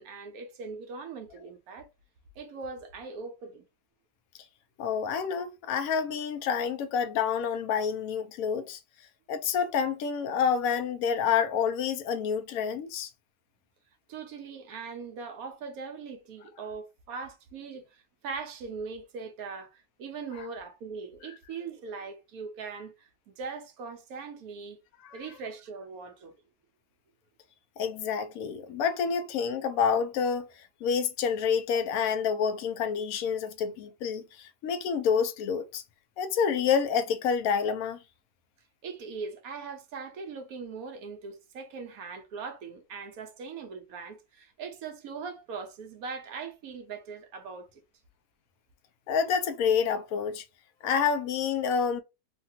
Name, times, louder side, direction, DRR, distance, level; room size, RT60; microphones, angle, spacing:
voice 1, 0.0-1.9 2.4-3.6 14.1-24.8 25.1-26.4 38.8-47.8, right 5 dB, 75° right, 1.2 m, -40 dB
voice 2, 4.8-8.8 9.3-13.1 25.0-25.2 27.8-30.5 30.8-35.8 36.2-38.0 49.1-50.4 50.8-52.0, left 6 dB, 75° left, 1.0 m, -28 dB
3.3 x 2.3 x 2.7 m
omnidirectional pair, 1.6 m